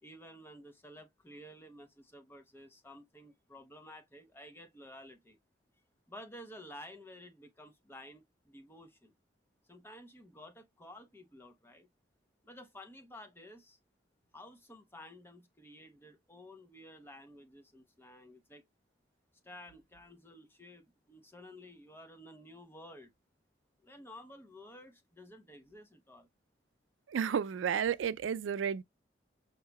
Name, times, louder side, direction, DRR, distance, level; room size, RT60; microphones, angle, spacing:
voice 1, 0.0-5.4 6.1-9.1 9.7-11.9 12.4-13.8 14.3-18.6 19.4-23.1 23.8-26.3, left 1 dB, 10° left, 0.7 m, -52 dB
voice 2, 27.1-28.8, right 7 dB, 90° right, 0.3 m, -32 dB
5.5 x 2.8 x 2.2 m
head